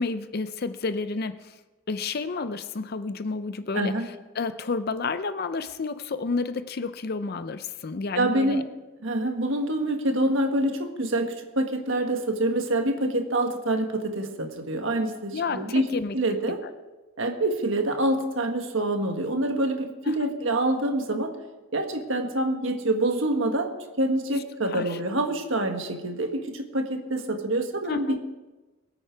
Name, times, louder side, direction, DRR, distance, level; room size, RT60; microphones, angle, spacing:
voice 1, 0.0-1.6 1.9-8.6 15.3-16.2 16.5-16.6 20.0-20.3 24.7-25.0 27.9-28.2, left 4 dB, 45° left, 12 dB, 0.5 m, -31 dB
voice 2, 3.7-4.1 8.1-8.6 9.0-15.9 16.1-16.6 17.2-21.4 21.7-28.2, right 1 dB, 60° right, 5 dB, 1.5 m, -26 dB
20.5 x 8.8 x 4.6 m, 1.2 s
head